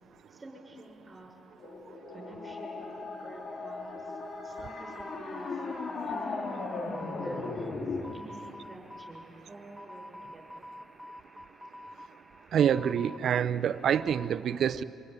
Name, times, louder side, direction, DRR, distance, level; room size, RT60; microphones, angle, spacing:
voice 1, 0.3-1.3 2.1-5.6 6.0-6.4 7.1-7.9 8.1-10.6, right 2 dB, 25° right, 0 dB, 6.4 m, -49 dB
sound 1, 1.6-8.1, left 3 dB, 50° left, 3.1 m, -37 dB
sound 2, 4.7-14.3, left 1 dB, ahead, 1.6 m, -48 dB
voice 2, 12.5-14.8, right 8 dB, 65° right, 11 dB, 0.7 m, -26 dB
25.5 x 24.0 x 9.7 m, 2.9 s
cardioid pair, 90°, 0 cm